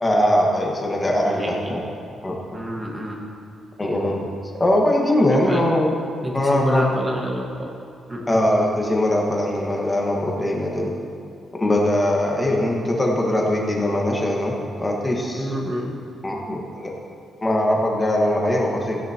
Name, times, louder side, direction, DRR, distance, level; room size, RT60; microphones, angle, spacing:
voice 1, 0.0-1.8 2.2-2.3 3.8-4.3 4.5-5.9 6.3-6.8 8.3-10.9 11.6-15.5 16.2-16.9 17.4-19.0, left 1 dB, 15° left, -1 dB, 1.5 m, -21 dB
voice 2, 1.3-1.9 2.5-3.3 5.3-5.7 6.2-7.7 8.1-8.4 15.3-16.0, equal, 15° right, -1 dB, 1.5 m, -28 dB
15.5 x 10.5 x 2.9 m, 2.7 s
wide cardioid pair, 170°, 0 cm